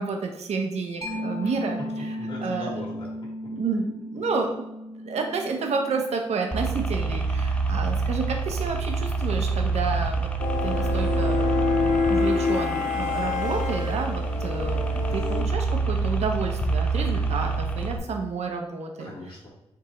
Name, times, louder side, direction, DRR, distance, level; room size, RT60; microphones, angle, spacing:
voice 1, 0.0-2.2 2.4-2.8 3.5-4.6 5.0-10.3 10.6-19.1, right 4 dB, 70° right, 2 dB, 0.6 m, -30 dB
Mallet percussion, 1.0-8.3, left 1 dB, 30° left, 1.2 m, -36 dB
voice 2, 1.4-1.8 2.2-3.5 19.0-19.5, left 1 dB, 45° left, -5 dB, 1.4 m, -40 dB
sound 1, 6.5-18.0, right 3 dB, 10° left, 0.4 m, -27 dB
sound 2, 10.4-15.4, left 5 dB, 90° left, 0.6 m, -27 dB
4.5 x 2.0 x 3.7 m, 0.95 s
cardioid pair, 90°, 12 cm